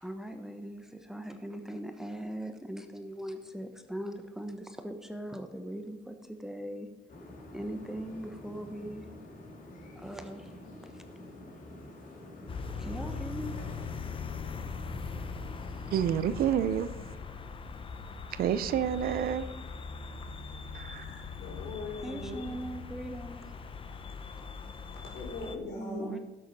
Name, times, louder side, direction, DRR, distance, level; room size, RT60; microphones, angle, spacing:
voice 1, 0.0-6.9 7.5-9.1 9.9-10.5 10.8-11.0 12.8-13.6 22.0-23.4 25.7-26.2, equal, 5° right, 1.0 m, -40 dB
sound 1, 7.1-16.4, left 1 dB, 50° left, 2.5 m, -48 dB
sound 2, 12.5-25.6, left 5 dB, 30° left, 0.8 m, -41 dB
voice 2, 15.9-16.9 18.3-19.5 20.7-21.0, right 9 dB, 60° right, 0.6 m, -28 dB
voice 3, 20.9-22.5 24.9-26.2, left 1 dB, 80° left, 4.2 m, -41 dB
12.0 x 7.8 x 5.4 m
cardioid pair, 110°, 17 cm